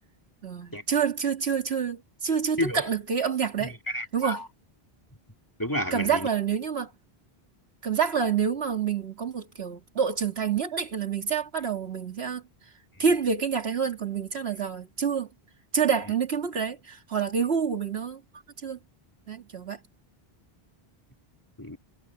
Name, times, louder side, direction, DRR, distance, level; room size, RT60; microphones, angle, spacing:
voice 1, 0.4-3.8 4.1-4.4 5.9-6.9 7.8-12.4 13.0-15.3 15.7-18.2 18.6-18.8 19.3-19.8, right 6 dB, 85° right, 2.3 m, -27 dB
voice 2, 3.6-4.5 5.6-6.3 21.6-21.8, equal, 20° left, 2.4 m, -31 dB
omnidirectional pair, 1.0 m